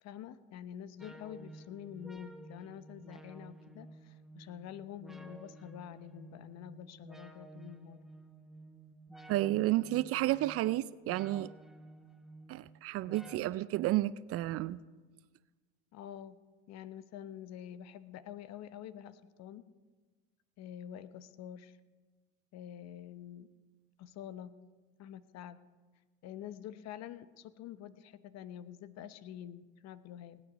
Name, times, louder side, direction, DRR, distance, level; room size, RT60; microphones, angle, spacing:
voice 1, 0.0-8.0 15.9-16.4 16.7-19.6 20.6-21.8 22.5-23.5 24.0-24.5 25.0-25.6 26.2-30.4, left 10 dB, 50° left, 14 dB, 1.0 m, -47 dB
sound 1, 1.0-13.4, right 2 dB, ahead, 1.0 m, -53 dB
voice 2, 9.3-11.5 12.5-14.8, right 16 dB, 40° right, 18 dB, 0.5 m, -31 dB
19.0 x 8.9 x 5.2 m, 1.3 s
hypercardioid pair, 80°, 35 cm